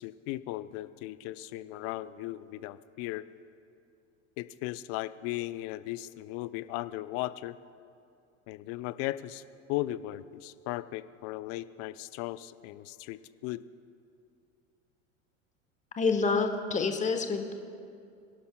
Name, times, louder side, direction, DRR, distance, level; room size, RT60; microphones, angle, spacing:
voice 1, 0.0-3.3 4.4-7.6 8.5-9.4 9.7-13.6, left 16 dB, 40° left, 15 dB, 0.4 m, -37 dB
voice 2, 16.0-17.5, left 4 dB, 20° left, 6 dB, 1.1 m, -27 dB
22.0 x 11.5 x 2.2 m, 2.5 s
hypercardioid pair, 85°, 39 cm